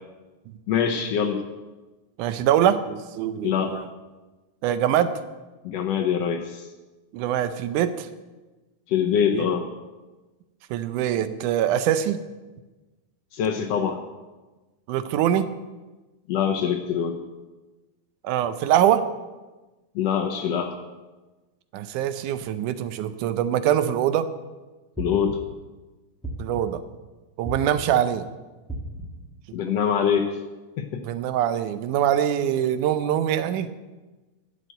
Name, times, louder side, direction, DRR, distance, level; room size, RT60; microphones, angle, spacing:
voice 1, 0.7-1.4 3.4-3.8 5.6-6.7 8.9-9.6 13.3-14.0 16.3-17.2 19.9-20.8 25.0-25.4 29.5-30.4 30.8-31.0, left 8 dB, 70° left, 4 dB, 1.6 m, -24 dB
voice 2, 2.2-3.9 4.6-5.1 7.1-8.1 9.3-9.5 10.7-12.2 14.9-15.5 18.2-19.1 21.7-24.3 26.4-26.8 27.4-28.3 31.0-33.7, right 10 dB, 80° right, 12 dB, 2.2 m, -23 dB
sound 1, 25.0-25.6 26.2-26.9 27.5-28.1 28.7-29.3, right 1 dB, 5° left, 0.4 m, -35 dB
11.0 x 7.5 x 7.9 m, 1.2 s
omnidirectional pair, 3.6 m